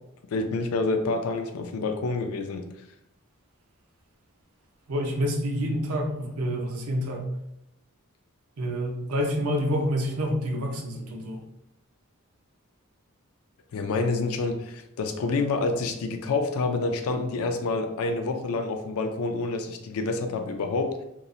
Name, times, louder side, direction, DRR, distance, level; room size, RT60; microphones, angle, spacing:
voice 1, 0.3-2.6 13.7-20.9, left 3 dB, 75° left, 6 dB, 0.4 m, -28 dB
voice 2, 4.9-7.3 8.6-11.4, equal, 90° right, 2 dB, 0.5 m, -28 dB
2.8 x 2.0 x 2.4 m, 0.83 s
head